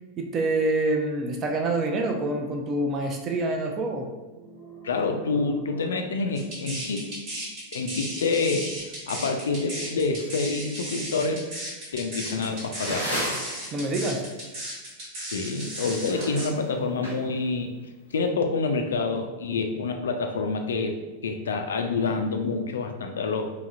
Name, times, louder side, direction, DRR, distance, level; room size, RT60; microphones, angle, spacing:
voice 1, 0.2-4.1 13.7-14.2, right 2 dB, 30° right, 3 dB, 0.5 m, -26 dB
sound 1, 4.3-7.0, right 6 dB, 5° right, 1.2 m, -47 dB
voice 2, 4.8-7.1 7.7-8.8 9.1-11.5 11.9-13.1 15.3-17.8 18.1-23.5, left 4 dB, 65° left, 5 dB, 0.3 m, -27 dB
sound 2, 6.4-16.5, right 1 dB, 45° right, 1.2 m, -35 dB
sound 3, 12.2-13.7 15.6-17.4, equal, 85° right, 1.1 m, -32 dB
3.9 x 2.8 x 2.4 m, 1.2 s
figure-of-eight pair, 90°, 0 cm